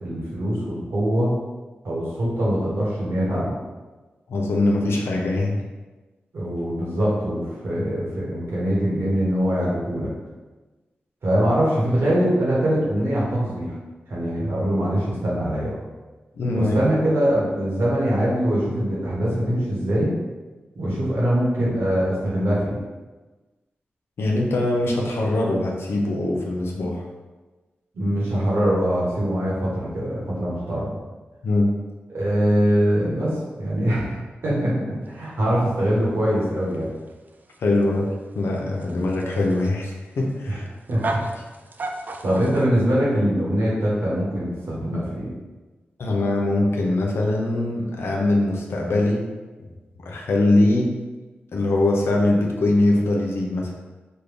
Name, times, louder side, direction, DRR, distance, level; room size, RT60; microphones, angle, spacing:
voice 1, 0.0-1.4 1.8-3.6 6.3-10.1 11.2-13.7 14.1-15.8 16.5-20.1 20.7-22.8 27.9-30.9 32.1-37.0 40.5-40.6 40.9-41.2 42.2-45.3, equal, 75° right, -6 dB, 1.2 m, -23 dB
voice 2, 4.3-5.6 7.8-7.9 16.3-16.7 24.2-27.0 31.4-31.7 37.6-40.6 46.0-49.2 50.0-50.9 51.5-53.7, left 2 dB, 80° left, 0 dB, 0.5 m, -22 dB
sound 1, 35.1-42.7, right 2 dB, 45° right, 0.3 m, -35 dB
3.4 x 2.2 x 3.4 m, 1.2 s
cardioid pair, 55°, 4 cm